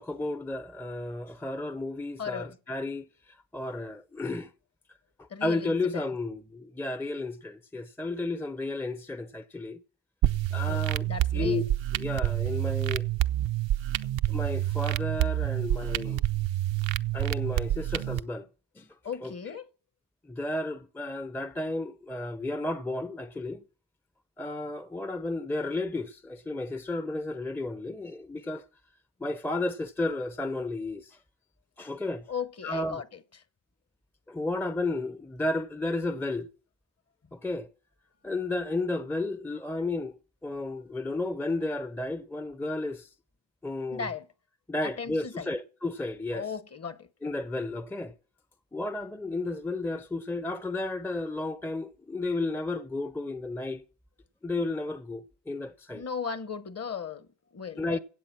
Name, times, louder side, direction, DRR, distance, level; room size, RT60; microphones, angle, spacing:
voice 1, 0.0-3.1 3.5-4.5 5.4-9.8 10.5-11.0 11.3-11.6 12.0-13.1 14.3-16.2 17.1-18.4 18.8-18.9 19.2-19.3 20.2-23.6 24.4-28.6 29.2-31.2 31.8-32.2 32.6-33.0 34.3-36.5 37.3-37.7 38.2-40.2 40.4-43.1 43.6-44.1 44.7-46.5 47.2-48.1 48.7-53.8 54.4-56.0 57.8-58.0, left 2 dB, 5° left, 0.6 m, -32 dB
voice 2, 2.2-2.6 5.3-6.1 10.7-11.6 19.0-19.7 32.3-33.4 43.9-44.3 44.8-45.5 46.3-47.1 55.9-58.0, left 6 dB, 35° left, 1.0 m, -37 dB
sound 1, 10.2-18.2, right 14 dB, 80° right, 0.6 m, -28 dB
16.5 x 7.9 x 6.0 m
cardioid pair, 90°, 44 cm